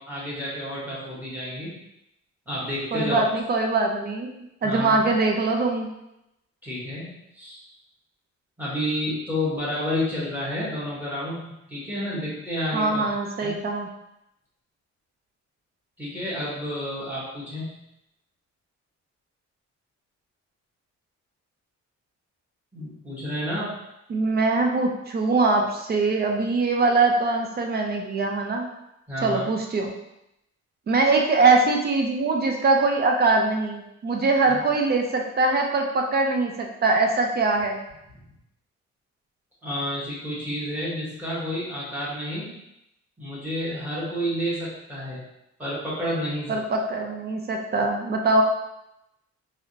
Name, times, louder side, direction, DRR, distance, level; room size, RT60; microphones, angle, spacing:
voice 1, 0.0-1.8 2.5-3.2 4.6-5.0 6.6-7.6 8.6-13.0 13.4-13.6 16.0-17.8 22.7-23.8 29.1-29.5 34.4-34.6 39.6-42.5 43.2-45.2 45.6-46.6, equal, 5° right, -7 dB, 1.0 m, -30 dB
voice 2, 2.9-4.3 4.6-5.9 12.7-13.9 24.1-28.7 29.2-29.9 30.9-37.8 46.5-48.4, right 3 dB, 35° right, 2 dB, 0.4 m, -22 dB
3.3 x 2.5 x 2.6 m, 0.85 s
wide cardioid pair, 170°, 30 cm